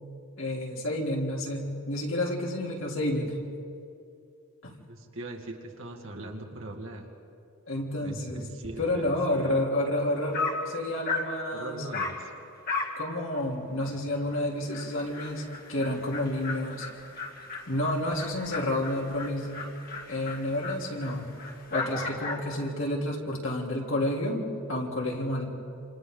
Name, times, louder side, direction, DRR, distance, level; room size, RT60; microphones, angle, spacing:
voice 1, 0.4-3.3 4.6-4.7 7.7-8.5 8.8-11.8 12.9-16.9 17.7-19.5 20.1-21.3 21.7-25.5, left 1 dB, 65° left, -2 dB, 3.3 m, -30 dB
voice 2, 4.9-7.1 8.0-9.6 11.5-12.3 13.9-14.0, right 1 dB, 65° right, 1 dB, 2.2 m, -40 dB
Dog, 10.0-10.1 10.3-10.7 11.1-11.4 11.9-12.2 12.7-13.0 13.3-13.4 13.8-13.9 14.3-14.4 14.7-22.5, left 3 dB, 45° left, 2.3 m, -36 dB
28.0 x 27.5 x 3.9 m, 2.5 s
head